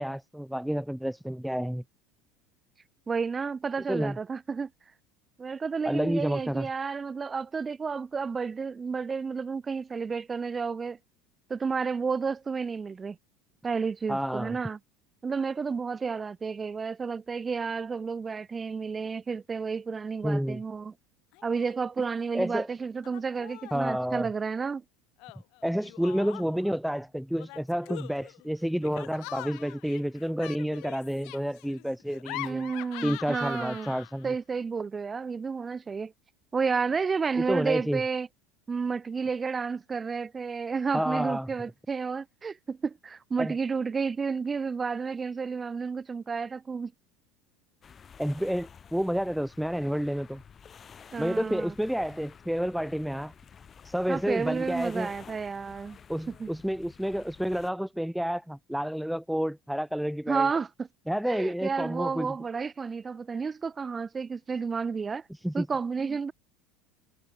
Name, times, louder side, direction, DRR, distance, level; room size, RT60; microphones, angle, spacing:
voice 1, 0.0-1.8 3.9-4.2 5.9-6.7 14.1-14.6 20.2-20.6 22.3-22.7 23.7-24.3 25.6-32.7 33.0-34.3 37.5-38.0 40.9-41.5 43.4-43.5 48.2-50.4 51.2-53.3 53.8-55.1 56.1-60.5 61.1-62.4 65.4-65.7, equal, ahead, 0.4 m, -30 dB
voice 2, 3.1-4.7 5.4-11.0 11.5-13.2 13.6-14.8 15.2-20.9 21.4-24.8 32.4-33.9 34.2-36.1 36.5-38.3 38.7-46.9 51.1-51.7 54.1-56.0 56.3-56.5 60.3-60.7 61.3-65.2 65.5-66.3, right 5 dB, 25° right, 0.8 m, -31 dB
Laughter, 21.3-21.7 22.0-22.6 23.0-23.9 25.2-26.7 27.4-34.3, left 26 dB, 65° left, 0.9 m, -43 dB
sound 1, 47.8-57.7, left 7 dB, 30° left, 5.0 m, -51 dB
hypercardioid pair, 85°, 0 cm